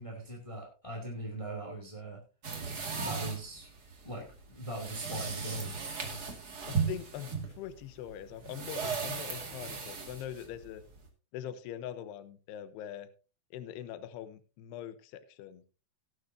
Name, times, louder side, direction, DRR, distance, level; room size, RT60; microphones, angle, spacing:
voice 1, 0.0-2.2 2.9-3.7 4.0-5.7, right 1 dB, 20° left, 0 dB, 0.8 m, -40 dB
sound 1, 2.4-11.1, right 5 dB, 70° right, 0.9 m, -37 dB
voice 2, 6.7-10.8 11.3-13.1 13.5-15.7, left 10 dB, 75° left, 13 dB, 2.6 m, -42 dB
18.0 x 9.5 x 2.7 m, 0.32 s
omnidirectional pair, 5.5 m